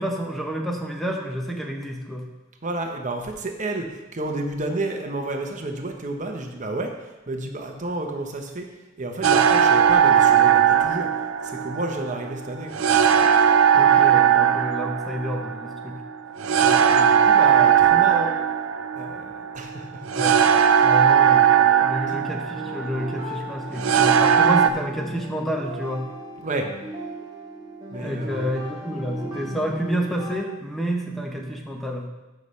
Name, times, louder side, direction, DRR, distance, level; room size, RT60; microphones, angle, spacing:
voice 1, 0.0-2.3 13.7-16.0 20.2-20.4 20.8-21.6 21.8-26.1 28.0-32.0, equal, ahead, 1 dB, 0.8 m, -29 dB
voice 2, 2.6-3.9 4.1-6.9 7.3-8.7 9.0-11.1 11.4-12.7 16.6-18.3 19.0-20.0 20.7-20.9 22.1-22.2 26.4-26.7 27.9-28.5, right 2 dB, 40° right, 3 dB, 0.9 m, -30 dB
sound 1, 9.2-24.7, right 8 dB, 90° right, 0.5 m, -18 dB
sound 2, 22.5-30.3, right 1 dB, 20° right, 2.9 m, -37 dB
13.5 x 5.7 x 3.2 m, 1.1 s
head